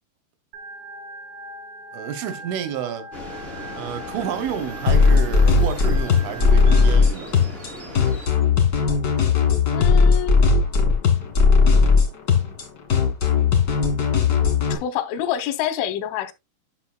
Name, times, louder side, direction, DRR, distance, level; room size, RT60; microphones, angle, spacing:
Organ, 0.5-7.0, equal, 70° right, 4.2 m, -40 dB
voice 1, 1.9-3.1 3.8-7.3, right 9 dB, 90° right, 3.6 m, -30 dB
sound 1, 3.1-8.3, left 1 dB, 55° right, 0.6 m, -37 dB
sound 2, 4.9-14.7, left 5 dB, 65° left, 0.9 m, -17 dB
voice 2, 9.7-10.4 14.7-16.3, left 11 dB, 90° left, 3.4 m, -26 dB
11.5 x 6.0 x 2.3 m
omnidirectional pair, 5.4 m